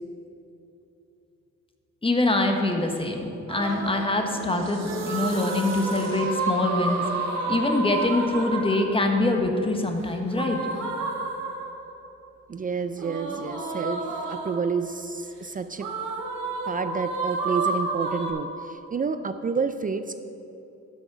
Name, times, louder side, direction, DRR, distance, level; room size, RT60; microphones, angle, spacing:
voice 1, 2.0-7.1 7.5-10.6, left 2 dB, 20° left, 3 dB, 1.3 m, -24 dB
sound 1, 3.5-4.1 4.8-9.0 10.3-11.9 13.0-14.7 15.8-18.3, right 3 dB, 75° right, 1.9 m, -30 dB
sound 2, 3.6-8.7, right 4 dB, 60° right, 1.6 m, -41 dB
voice 2, 12.5-15.9 16.7-20.2, right 5 dB, 30° right, 10 dB, 0.4 m, -29 dB
11.5 x 6.2 x 6.2 m, 2.9 s
cardioid pair, 90°, 30 cm